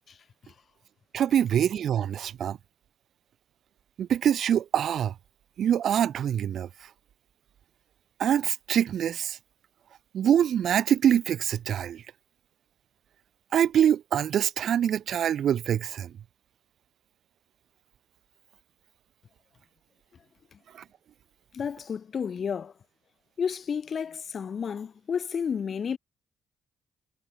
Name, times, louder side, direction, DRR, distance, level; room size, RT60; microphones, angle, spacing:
voice 1, 1.1-2.6 4.0-5.1 5.6-6.9 8.2-9.4 10.1-12.0 13.5-16.1 20.7-20.8, right 9 dB, 70° right, 0.8 m, -25 dB
voice 2, 21.5-22.7 23.4-26.0, left 7 dB, 55° left, 3.4 m, -31 dB
cardioid pair, 70°, 0 cm